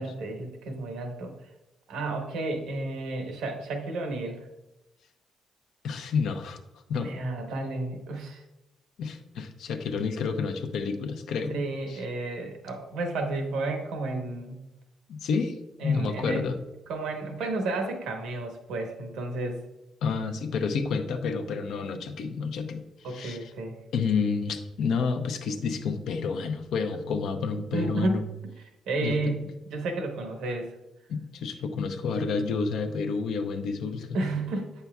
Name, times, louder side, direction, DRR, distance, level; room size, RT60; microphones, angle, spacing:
voice 1, 0.0-1.3 1.9-4.4 7.0-8.4 11.4-14.6 15.8-16.4 16.9-19.6 23.0-23.8 27.7-28.2 28.9-30.7 34.1-34.7, right 2 dB, 85° right, 4 dB, 1.1 m, -32 dB
voice 2, 5.8-6.6 6.9-7.1 9.0-11.6 11.9-12.0 15.1-15.6 15.8-16.6 20.0-23.5 23.9-28.2 29.0-29.3 31.1-34.2, left 5 dB, 75° left, 6 dB, 0.6 m, -29 dB
8.1 x 5.6 x 2.3 m, 0.96 s
cardioid pair, 90°, 0 cm